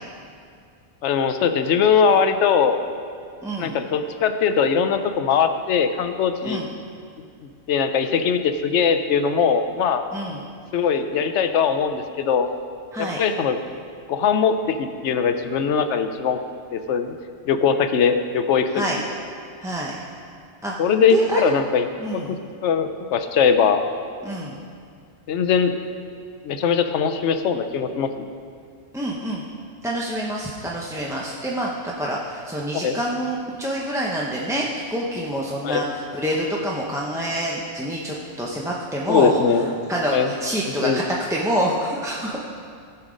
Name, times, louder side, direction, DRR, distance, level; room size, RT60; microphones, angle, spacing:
voice 1, 1.0-2.8 3.6-6.6 7.7-10.0 10.7-12.5 13.0-13.6 14.1-16.4 16.7-17.1 17.5-19.0 20.8-21.8 22.1-22.4 22.6-23.8 25.3-25.7 26.4-28.3 32.7-33.0 35.6-35.8 39.1-39.7 40.1-40.3 40.8-41.0, left 6 dB, 85° left, 8 dB, 1.0 m, -21 dB
voice 2, 3.4-3.8 6.4-6.7 10.1-10.4 12.9-13.2 18.7-19.0 19.6-20.0 20.6-20.7 21.1-21.4 22.0-22.4 24.2-24.6 28.9-29.4 29.8-39.4 39.9-41.0 41.3-42.4, equal, 5° right, -4 dB, 0.6 m, -27 dB
14.5 x 5.8 x 5.0 m, 2.2 s
omnidirectional pair, 1.2 m